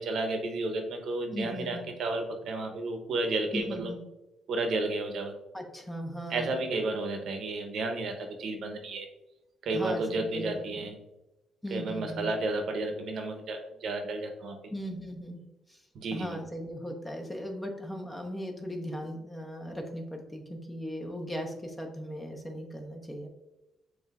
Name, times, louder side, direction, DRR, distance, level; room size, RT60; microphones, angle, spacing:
voice 1, 0.0-3.9 4.5-5.3 6.3-9.1 9.6-11.0 11.7-14.6 15.9-16.4, right 2 dB, 65° right, 4 dB, 0.7 m, -32 dB
voice 2, 1.3-1.9 3.5-4.0 5.5-6.6 9.7-10.6 11.6-12.3 14.7-15.8 16.1-23.3, equal, 15° left, 3 dB, 0.8 m, -38 dB
7.1 x 2.6 x 2.3 m, 0.98 s
cardioid pair, 90°, 0 cm